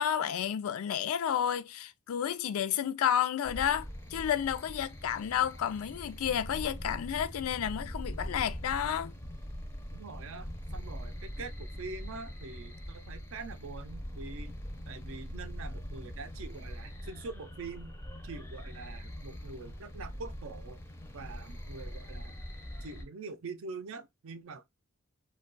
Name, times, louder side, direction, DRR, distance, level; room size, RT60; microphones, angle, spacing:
voice 1, 0.0-9.1, left 9 dB, 90° left, 0.4 m, -31 dB
sound 1, 3.4-23.0, equal, 10° left, 0.5 m, -42 dB
voice 2, 9.9-14.5 14.9-17.9 18.2-20.8 21.1-22.3 22.8-24.7, right 4 dB, 65° right, 0.5 m, -44 dB
2.3 x 2.2 x 3.7 m
head